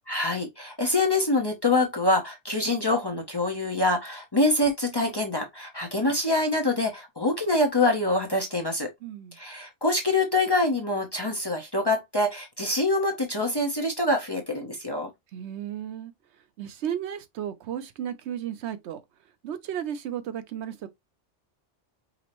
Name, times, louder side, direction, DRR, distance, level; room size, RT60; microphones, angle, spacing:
voice 1, 0.1-8.9 9.3-15.1, left 2 dB, 25° left, 0.6 m, -25 dB
voice 2, 9.0-9.4 15.3-16.1 16.6-19.0 19.4-20.9, right 10 dB, 75° right, 0.8 m, -34 dB
5.2 x 2.0 x 2.9 m
omnidirectional pair, 1.2 m